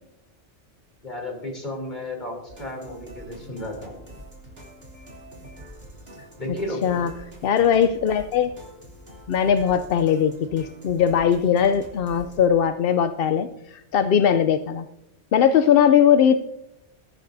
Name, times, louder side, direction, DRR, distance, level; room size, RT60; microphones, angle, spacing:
voice 1, 1.0-3.9 6.4-7.1 14.2-14.3, left 1 dB, 40° left, 1 dB, 3.5 m, -33 dB
sound 1, 2.5-12.5, equal, 55° right, 3.0 m, -45 dB
voice 2, 7.4-8.5 9.3-14.9 15.3-16.4, left 8 dB, 60° left, 10 dB, 0.7 m, -20 dB
20.5 x 11.0 x 2.6 m, 0.87 s
omnidirectional pair, 1.2 m